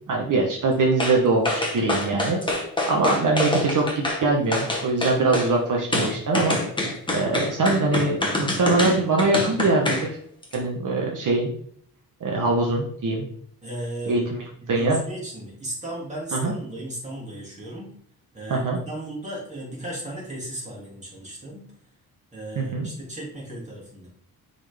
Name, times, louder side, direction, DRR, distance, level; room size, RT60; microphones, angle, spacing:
voice 1, 0.1-2.4 2.9-3.8 4.2-6.6 7.1-10.1 10.5-11.5 12.2-13.3 14.1-14.2 14.7-15.0 16.3-16.6 18.5-18.8 22.6-22.9, right 3 dB, 55° right, -1 dB, 1.1 m, -22 dB
sound 1, 1.0-1.2 1.4-4.2 4.5-5.5 5.9-10.1 10.4-10.6, left 1 dB, 15° left, 1.2 m, -25 dB
voice 2, 13.6-14.2 14.6-17.9 18.3-21.7 22.3-24.1, right 1 dB, 20° right, -5 dB, 2.4 m, -35 dB
9.9 x 4.1 x 3.5 m, 0.64 s
wide cardioid pair, 180°, 37 cm